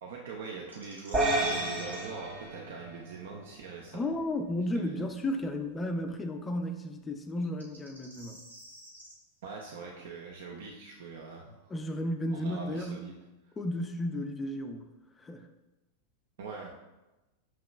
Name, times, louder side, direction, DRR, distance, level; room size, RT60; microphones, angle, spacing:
voice 1, 0.0-4.2 4.7-5.0 9.4-11.7 12.3-13.1 16.4-16.7, right 4 dB, 60° right, 0 dB, 0.4 m, -43 dB
sound 1, 0.7-2.1 5.2-5.3 7.4-9.1, right 1 dB, 85° right, 0.9 m, -48 dB
sound 2, 1.1-3.6, right 2 dB, 25° right, 0.7 m, -31 dB
voice 2, 3.9-8.4 11.7-13.1 13.6-14.9 15.2-15.5, left 1 dB, 15° left, 5 dB, 0.4 m, -33 dB
5.9 x 2.8 x 2.3 m, 1.0 s
figure-of-eight pair, 90°, 0 cm